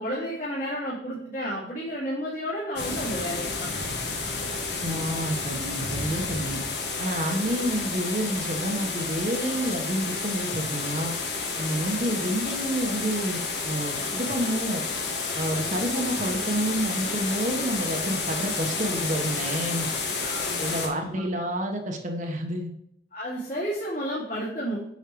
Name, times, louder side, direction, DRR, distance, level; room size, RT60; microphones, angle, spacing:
voice 1, 0.0-4.0 20.2-21.3 23.1-24.8, equal, 45° left, -8 dB, 2.5 m, -32 dB
sound 1, 2.8-20.9, left 4 dB, 65° left, 1.5 m, -30 dB
voice 2, 4.8-6.6 7.0-11.1 11.6-14.8 15.3-19.9 20.6-22.7, equal, 45° right, 3 dB, 1.2 m, -29 dB
8.3 x 5.6 x 3.1 m, 0.77 s
head